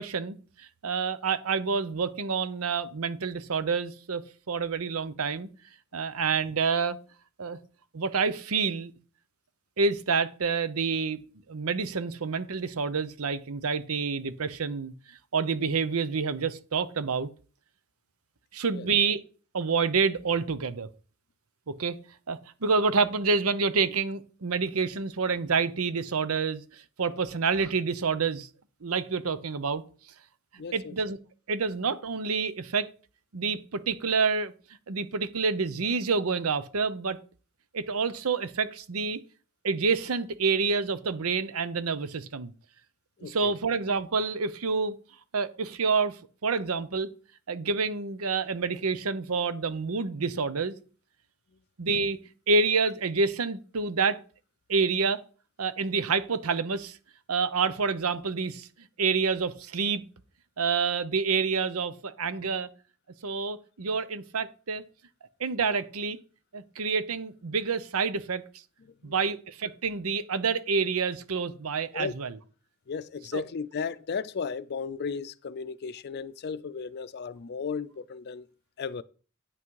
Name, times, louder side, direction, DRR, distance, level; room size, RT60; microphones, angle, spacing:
voice 1, 0.0-5.5 5.9-7.0 7.4-7.6 7.9-8.9 9.8-11.2 11.5-14.9 15.3-17.3 18.5-19.2 19.5-20.9 21.8-22.0 22.3-28.5 28.8-29.8 30.7-31.2 31.5-32.9 33.3-34.5 34.9-37.2 37.7-39.2 39.6-42.5 43.2-44.9 45.3-47.1 47.5-50.7 51.8-52.2 52.5-54.2 54.7-55.2 55.6-57.0 57.3-58.7 59.0-60.0 60.6-62.7 63.2-64.8 65.4-66.2 66.5-68.4 69.0-72.3 73.3-73.4, right 5 dB, 80° right, 0.8 m, -28 dB
voice 2, 30.6-31.0 43.2-43.6 68.8-69.2 71.9-72.1 72.9-78.5 78.8-79.0, left 5 dB, 50° left, 0.5 m, -35 dB
9.5 x 6.0 x 4.7 m
head